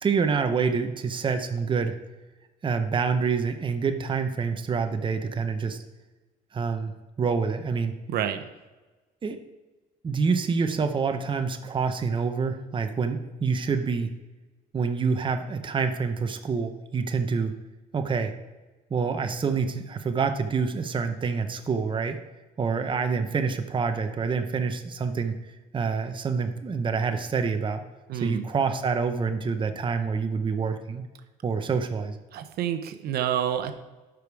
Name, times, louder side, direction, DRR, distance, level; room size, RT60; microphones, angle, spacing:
voice 1, 0.0-2.0 2.6-5.8 6.5-7.9 9.2-9.4 10.0-14.1 14.7-17.5 17.9-18.3 18.9-22.2 22.6-25.3 25.7-27.8 28.1-31.1 31.4-32.2, right 5 dB, 30° right, 7 dB, 0.8 m, -27 dB
voice 2, 8.1-8.5 28.1-28.4 32.3-33.7, right 10 dB, 70° right, 8 dB, 0.8 m, -28 dB
12.0 x 5.1 x 4.7 m, 1.2 s
cardioid pair, 110°, 17 cm